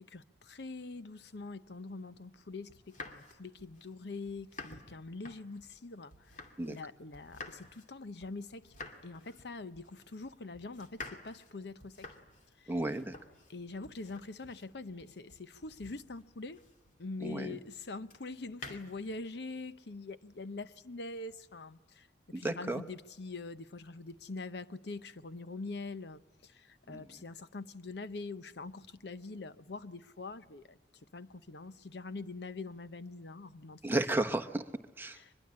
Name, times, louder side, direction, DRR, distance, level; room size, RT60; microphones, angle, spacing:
voice 1, 0.0-8.7 9.0-12.1 12.6-12.8 13.5-16.6 17.0-22.1 22.3-30.8 31.1-34.0 35.1-35.3, left 3 dB, 65° left, 0.8 m, -44 dB
sound 1, 2.7-6.9 7.1-17.1 18.1-19.2, left 3 dB, 45° left, 2.4 m, -51 dB
voice 2, 12.7-13.1 17.2-17.6 22.3-22.8 26.9-27.0 33.8-34.6 35.0-35.2, right 2 dB, 10° right, 1.1 m, -33 dB
24.0 x 21.5 x 8.6 m
head